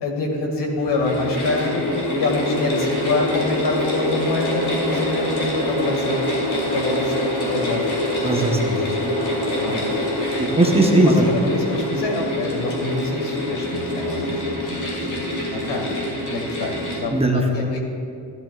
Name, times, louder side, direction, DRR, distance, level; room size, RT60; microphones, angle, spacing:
voice 1, 0.0-1.8 2.2-6.2 6.7-8.0 9.6-9.9 10.9-17.8, left 3 dB, 80° left, 1 dB, 2.0 m, -26 dB
sound 1, 0.8-17.0, left 1 dB, 45° left, 2.8 m, -25 dB
voice 2, 8.2-9.1 10.4-11.2 17.1-17.4, right 2 dB, 15° right, 1 dB, 0.7 m, -18 dB
15.0 x 12.0 x 2.4 m, 2.5 s
cardioid pair, 150°, 42 cm